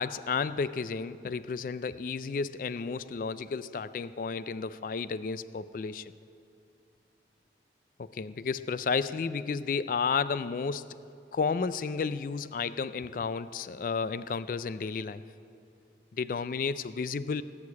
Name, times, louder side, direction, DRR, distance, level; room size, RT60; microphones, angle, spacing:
voice 1, 0.0-6.1 8.0-11.0 11.3-15.2 16.1-17.4, left 5 dB, 50° left, 15 dB, 0.3 m, -32 dB
18.0 x 6.5 x 8.4 m, 2.5 s
head